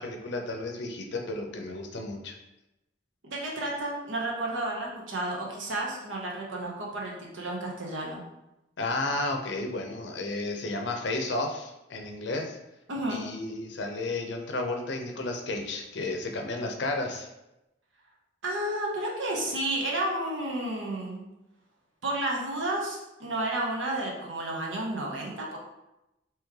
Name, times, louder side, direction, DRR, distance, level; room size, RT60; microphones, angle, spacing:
voice 1, 0.0-2.4 8.8-12.6 13.1-17.3, left 2 dB, 60° left, 3 dB, 0.6 m, -32 dB
voice 2, 3.2-8.2 12.9-13.2 18.4-21.2 22.0-25.6, right 1 dB, 75° right, -2 dB, 0.9 m, -31 dB
3.1 x 3.0 x 3.5 m, 0.91 s
head